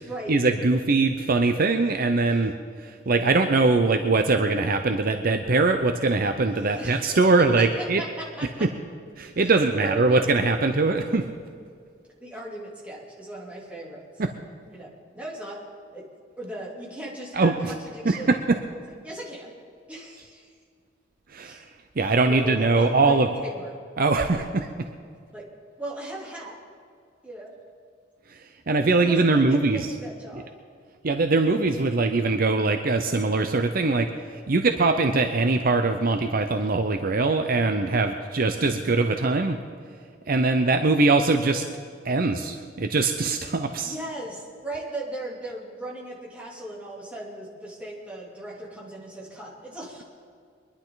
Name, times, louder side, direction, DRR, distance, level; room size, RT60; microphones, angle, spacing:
voice 1, 0.3-2.5 2.8-8.0 9.2-11.2 14.2-14.3 17.3-17.5 18.0-18.6 21.3-21.6 22.0-23.3 24.0-24.7 28.3-28.4 28.7-29.9 31.0-39.6 40.3-41.6 42.0-43.9, right 3 dB, 50° right, 6 dB, 0.7 m, -22 dB
voice 2, 6.7-8.7 9.3-9.5 9.8-10.3 12.2-14.1 14.7-15.6 15.9-16.1 16.4-18.3 19.0-19.5 19.9-20.5 21.4-21.6 22.3-23.8 24.3-24.4 25.3-25.5 25.8-26.6 27.2-27.5 29.0-30.5 43.8-50.0, right 1 dB, 5° right, -5 dB, 3.2 m, -37 dB
23.5 x 11.5 x 4.0 m, 2.2 s
head